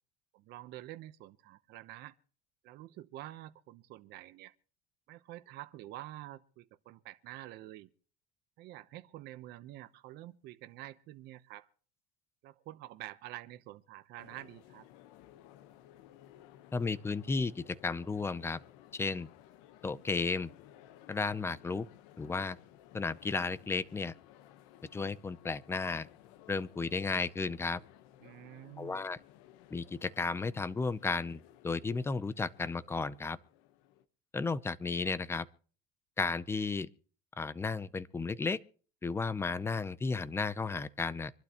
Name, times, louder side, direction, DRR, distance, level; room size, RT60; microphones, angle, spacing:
voice 1, 0.3-2.1 2.6-4.5 5.1-7.9 8.6-11.7 12.4-14.9 28.2-29.0, right 15 dB, 60° right, 0.9 m, -48 dB
sound 1, 14.2-34.0, left 12 dB, 80° left, 1.2 m, -58 dB
voice 2, 16.7-18.6 18.9-19.3 19.8-20.5 21.1-21.9 22.2-22.6 22.9-24.1 24.9-26.1 26.5-27.8 28.8-29.2 29.7-33.4 34.3-35.5 36.2-36.9 37.4-38.6 39.0-41.3, left 4 dB, 15° left, 0.6 m, -34 dB
25.5 x 12.0 x 3.0 m
cardioid pair, 140°, 19 cm